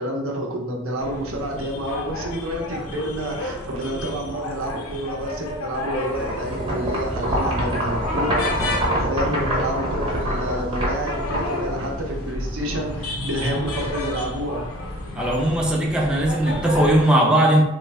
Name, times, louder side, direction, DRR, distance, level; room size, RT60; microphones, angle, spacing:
voice 1, 0.0-14.7, right 1 dB, 70° right, 1 dB, 0.6 m, -28 dB
sound 1, 1.0-17.0, left 2 dB, 80° left, 0.5 m, -31 dB
sound 2, 6.1-12.3, equal, 25° right, 0.8 m, -26 dB
voice 2, 15.2-17.6, right 1 dB, 5° right, -2 dB, 0.3 m, -18 dB
3.1 x 2.0 x 3.3 m, 0.87 s
head